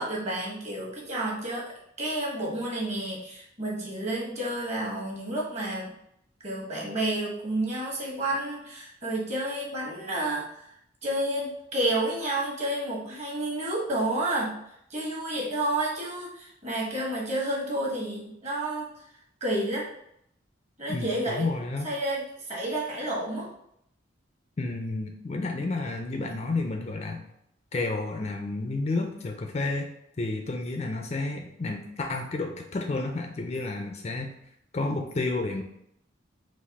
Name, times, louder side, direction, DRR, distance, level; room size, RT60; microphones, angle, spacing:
voice 1, 0.0-5.9 6.4-10.7 11.0-14.6 14.9-18.9 19.4-19.9 20.8-21.5 21.8-23.5, right 1 dB, 35° right, -4 dB, 1.2 m, -30 dB
voice 2, 20.9-21.9 24.6-27.2 27.7-29.9 30.2-34.3 34.7-35.6, left 3 dB, 35° left, 4 dB, 0.4 m, -31 dB
4.0 x 2.6 x 4.0 m, 0.74 s
head